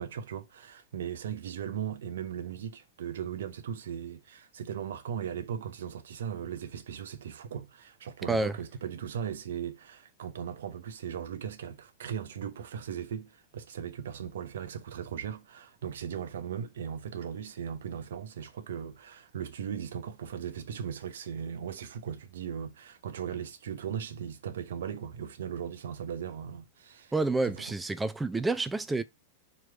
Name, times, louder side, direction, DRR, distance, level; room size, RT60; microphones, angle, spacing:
voice 1, 0.0-27.1 27.4-27.7, right 8 dB, 60° right, 0.9 m, -38 dB
voice 2, 27.1-29.0, right 3 dB, 10° right, 0.9 m, -29 dB
5.4 x 4.6 x 5.7 m
figure-of-eight pair, 90°, 0 cm